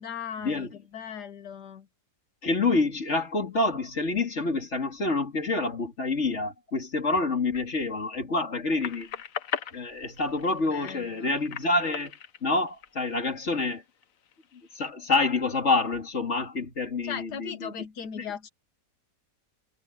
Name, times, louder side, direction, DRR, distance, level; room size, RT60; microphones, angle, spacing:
voice 1, 0.0-1.9 10.5-11.5 17.0-18.5, left 8 dB, 80° left, 1.7 m, -38 dB
voice 2, 2.4-9.1 9.7-13.8 14.7-17.7 18.2-18.3, left 3 dB, 45° left, 2.9 m, -27 dB
sound 1, 8.8-13.5 14.0-14.9, left 8 dB, 60° left, 1.3 m, -38 dB
omnidirectional pair, 1.7 m